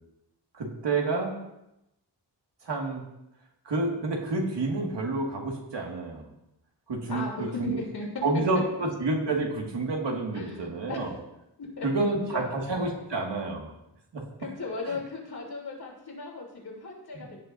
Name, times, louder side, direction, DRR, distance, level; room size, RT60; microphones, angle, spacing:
voice 1, 0.5-1.3 2.6-3.0 3.7-6.2 6.9-7.3 7.6-7.8 8.2-11.1 11.8-13.7 14.1-14.2 17.2-17.3, right 3 dB, 80° right, -1 dB, 2.1 m, -29 dB
voice 2, 7.1-8.1 10.3-11.1 11.6-11.9 12.3-12.6 14.4-17.4, left 4 dB, 60° left, -2 dB, 3.3 m, -37 dB
16.5 x 7.5 x 2.7 m, 0.86 s
wide cardioid pair, 135°, 42 cm